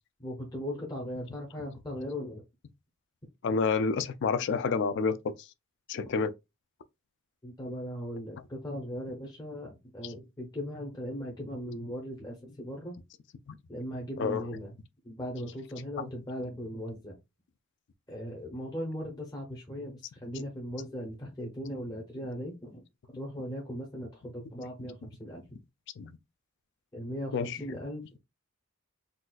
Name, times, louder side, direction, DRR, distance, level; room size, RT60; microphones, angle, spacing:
voice 1, 0.2-2.4 7.4-13.0 13.7-14.8 15.0-17.2 18.1-22.8 23.1-25.6 26.9-28.2, equal, 20° left, 0.6 m, -38 dB
voice 2, 3.4-5.3 5.9-6.3 10.0-10.1 14.2-14.6 26.0-26.2 27.3-27.7, left 5 dB, 55° left, 0.3 m, -29 dB
4.0 x 2.4 x 2.3 m
head